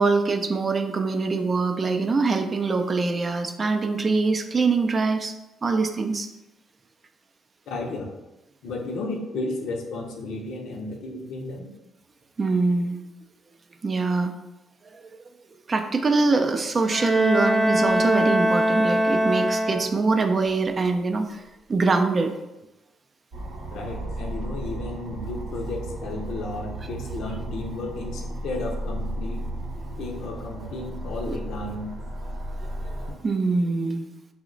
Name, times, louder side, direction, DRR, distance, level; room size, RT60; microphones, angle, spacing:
voice 1, 0.0-5.3 5.6-6.3 12.4-13.0 13.8-14.3 15.7-21.4 21.7-22.3 31.3-31.4 32.6-32.7 33.2-34.1, right 3 dB, 35° right, 6 dB, 0.3 m, -23 dB
voice 2, 7.7-8.1 8.6-11.7 23.7-29.4 30.0-31.9, left 2 dB, 75° left, 1 dB, 0.5 m, -33 dB
Bowed string instrument, 16.8-20.2, equal, 25° left, 0.5 m, -23 dB
sound 1, 23.3-33.1, right 1 dB, 75° right, 0.8 m, -34 dB
2.9 x 2.1 x 3.7 m, 0.96 s
cardioid pair, 90°, 0 cm